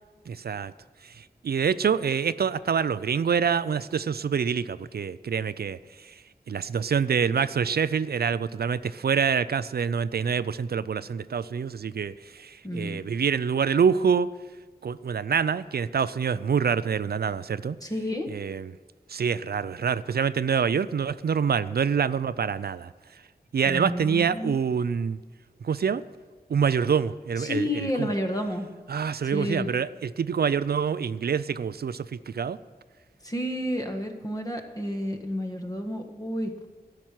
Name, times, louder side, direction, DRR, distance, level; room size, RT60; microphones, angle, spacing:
voice 1, 0.3-0.7 1.0-6.2 6.5-14.3 14.8-17.8 18.3-18.8 19.1-22.9 23.5-25.2 25.6-26.0 26.5-28.1 28.9-32.6, right 6 dB, 75° right, 15 dB, 0.4 m, -26 dB
voice 2, 12.6-13.0 17.8-18.3 23.6-24.5 27.4-28.7 29.2-29.7 33.2-36.5, left 1 dB, 20° left, 3 dB, 1.6 m, -30 dB
12.5 x 6.0 x 9.1 m, 1.3 s
wide cardioid pair, 55°, 16 cm